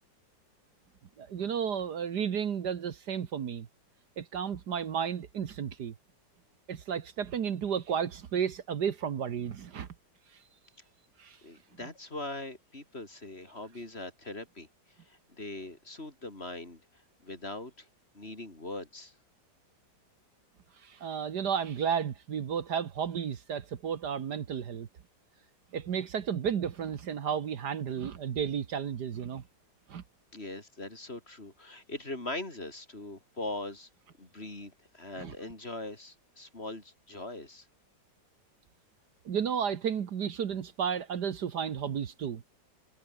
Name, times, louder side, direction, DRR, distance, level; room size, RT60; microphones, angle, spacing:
voice 1, 1.2-3.7 4.2-5.9 6.7-9.9 11.2-11.4 20.8-24.9 25.7-29.4 29.9-30.0 35.2-35.3 39.3-42.4, right 7 dB, 65° right, 1.8 m, -33 dB
voice 2, 11.4-14.7 15.0-16.8 17.2-17.9 18.1-19.1 30.3-33.9 34.2-37.7, left 2 dB, 35° left, 4.4 m, -41 dB
omnidirectional pair, 1.9 m